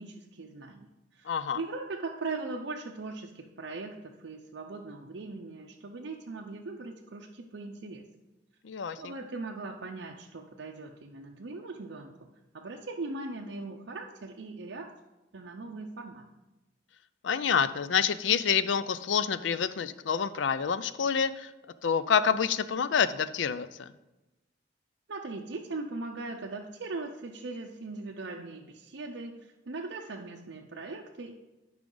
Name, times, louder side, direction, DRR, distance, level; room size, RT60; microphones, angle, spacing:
voice 1, 0.0-8.0 9.0-12.3 12.5-14.9 15.3-16.3 25.1-31.3, right 3 dB, 75° right, 1 dB, 0.6 m, -40 dB
voice 2, 1.3-1.6 8.6-9.1 17.2-21.5 21.8-23.9, left 7 dB, 80° left, 14 dB, 0.4 m, -27 dB
12.0 x 5.0 x 3.9 m, 1.0 s
head